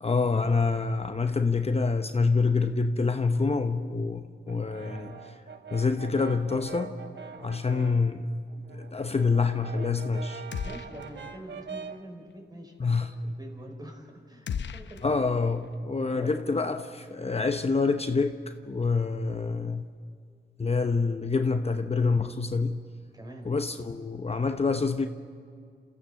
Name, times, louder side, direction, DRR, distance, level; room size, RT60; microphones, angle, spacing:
voice 1, 0.0-5.3 5.7-7.0 7.4-8.3 8.7-10.4 12.8-13.1 15.0-19.9 20.6-22.8 23.4-25.1, left 4 dB, 35° left, 0.9 m, -26 dB
Brass instrument, 4.5-8.1 8.5-12.1, right 6 dB, 75° right, 1.1 m, -43 dB
sound 1, 10.5-11.4 11.7-11.8 14.5-15.8, left 7 dB, 80° left, 0.7 m, -37 dB
voice 2, 10.6-14.5 14.7-15.0 15.3-15.4 15.9-16.4 23.1-23.5, equal, 20° right, 4.8 m, -45 dB
28.5 x 15.0 x 7.0 m
cardioid pair, 70°, 19 cm